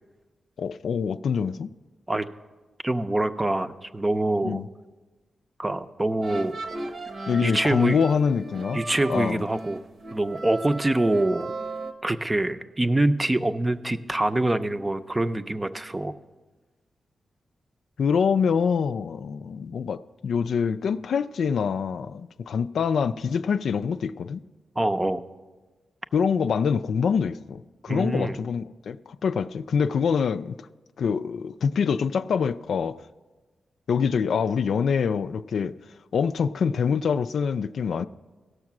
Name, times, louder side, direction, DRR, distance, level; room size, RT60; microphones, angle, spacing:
voice 1, 0.6-1.7 4.4-4.7 7.3-8.8 9.1-9.4 18.0-24.4 26.1-30.6 31.0-33.0 33.9-35.8 36.1-38.1, left 6 dB, 80° left, 0.3 m, -25 dB
voice 2, 2.8-4.6 5.6-6.6 7.4-8.0 8.7-9.8 10.1-11.5 12.0-16.1 24.8-25.2 27.9-28.4, right 1 dB, 20° right, 0.5 m, -25 dB
sound 1, 6.2-11.9, right 2 dB, 70° right, 1.1 m, -36 dB
16.5 x 6.4 x 6.0 m
cardioid pair, 70°, 0 cm